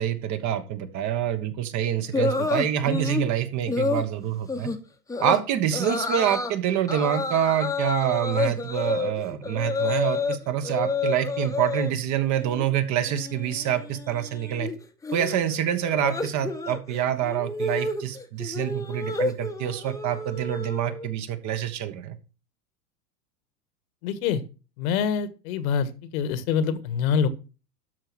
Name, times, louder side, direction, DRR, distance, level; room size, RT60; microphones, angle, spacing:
voice 1, 0.0-4.7 5.2-14.7 15.1-22.2, right 10 dB, 35° right, 10 dB, 1.3 m, -26 dB
sound 1, 2.1-3.3 3.7-4.1 4.5-4.8 5.1-5.4 5.7-6.5 6.9-10.4 10.6-11.9 12.2-12.7 12.9-21.1, left 3 dB, 5° left, 1.0 m, -29 dB
voice 2, 24.0-24.4 24.8-27.3, left 7 dB, 60° left, 14 dB, 1.5 m, -25 dB
12.5 x 4.7 x 6.2 m, 0.33 s
hypercardioid pair, 110°, 47 cm